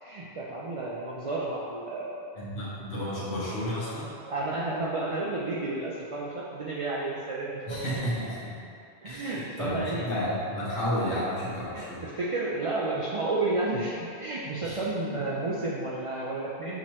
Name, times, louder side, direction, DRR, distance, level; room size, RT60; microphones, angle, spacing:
voice 1, 0.0-2.3 4.3-7.8 9.0-10.1 11.7-16.8, right 2 dB, 60° right, -5 dB, 0.3 m, -31 dB
voice 2, 2.3-4.1 7.7-8.5 9.0-12.0 14.6-15.2, equal, 55° left, -9 dB, 1.3 m, -32 dB
6.0 x 2.9 x 3.0 m, 2.5 s
omnidirectional pair, 1.1 m